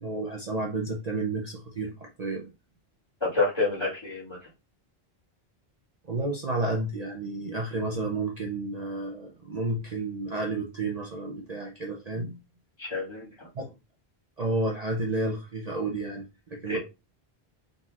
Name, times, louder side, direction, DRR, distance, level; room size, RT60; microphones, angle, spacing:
voice 1, 0.0-2.5 6.1-12.4 13.5-13.7 14.4-16.8, right 2 dB, 45° right, 0 dB, 0.7 m, -31 dB
voice 2, 3.2-4.4 12.8-13.3 16.7-16.8, left 3 dB, 25° left, -7 dB, 2.3 m, -28 dB
4.2 x 4.0 x 2.4 m, 0.26 s
omnidirectional pair, 1.1 m